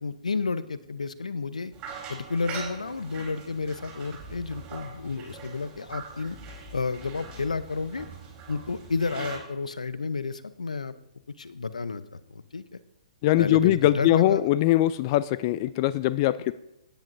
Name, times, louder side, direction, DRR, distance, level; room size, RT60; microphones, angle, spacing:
voice 1, 0.0-1.7 2.1-6.4 6.7-8.1 8.5-11.0 11.4-12.8 13.4-14.5, left 4 dB, 85° left, 15 dB, 0.7 m, -31 dB
sound 1, 1.7-9.4, right 5 dB, 30° right, 3.8 m, -42 dB
voice 2, 13.2-16.5, left 15 dB, 35° left, 16 dB, 0.4 m, -22 dB
17.0 x 10.0 x 2.7 m, 0.83 s
figure-of-eight pair, 130°, 4 cm